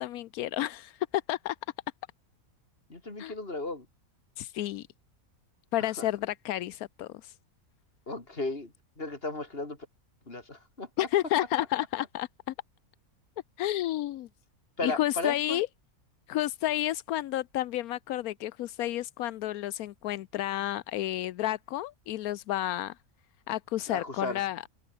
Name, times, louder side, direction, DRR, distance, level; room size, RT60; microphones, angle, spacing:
voice 1, 0.0-1.6 3.2-3.3 4.4-4.9 5.7-7.4 11.0-12.5 13.6-14.3 14.8-15.7 16.3-23.0 23.5-24.7, left 14 dB, 85° left, 1.1 m, -31 dB
voice 2, 2.9-3.9 6.0-6.1 8.1-9.8 10.3-10.9 14.8-15.6 23.9-24.4, left 2 dB, 40° left, 4.1 m, -35 dB
omnidirectional pair, 1.5 m